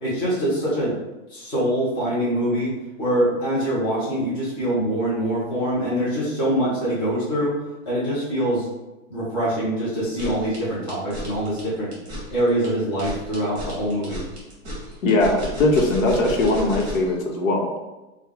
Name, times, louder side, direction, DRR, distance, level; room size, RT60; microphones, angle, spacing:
voice 1, 0.0-1.0 1.3-7.6 7.9-8.7 9.1-11.9 12.3-14.2, right 1 dB, 10° left, -9 dB, 0.7 m, -24 dB
sound 1, 10.2-17.1, equal, 20° right, 1.1 m, -34 dB
voice 2, 15.0-17.8, left 2 dB, 80° left, 0 dB, 0.9 m, -20 dB
3.2 x 2.2 x 3.7 m, 1.0 s
supercardioid pair, 170°, 39 cm